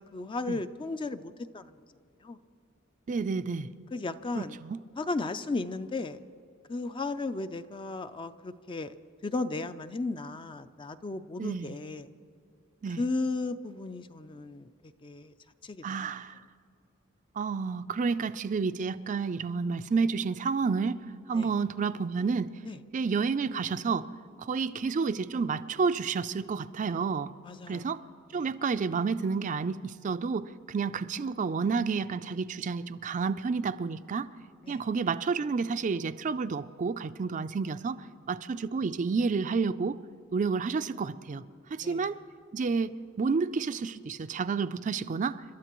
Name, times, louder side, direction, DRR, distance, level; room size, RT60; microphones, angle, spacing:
voice 1, 0.0-1.8 2.2-2.4 3.9-4.6 5.0-6.2 6.7-8.9 9.2-12.1 12.9-14.7 15.0-15.3 15.6-16.1 21.3-21.5 22.6-22.8 27.4-27.9 28.3-28.5 34.6-34.8 41.8-42.1, left 3 dB, 25° left, 0.4 m, -35 dB
voice 2, 3.1-3.7 4.4-4.8 11.4-11.7 12.8-13.0 15.8-16.4 17.4-21.0 21.3-22.5 22.9-24.1 24.4-27.3 27.7-28.0 28.3-34.3 34.7-40.0 40.3-41.4 41.7-42.2 42.5-45.4, right 5 dB, 40° right, 0.4 m, -30 dB
30.0 x 13.0 x 3.0 m
head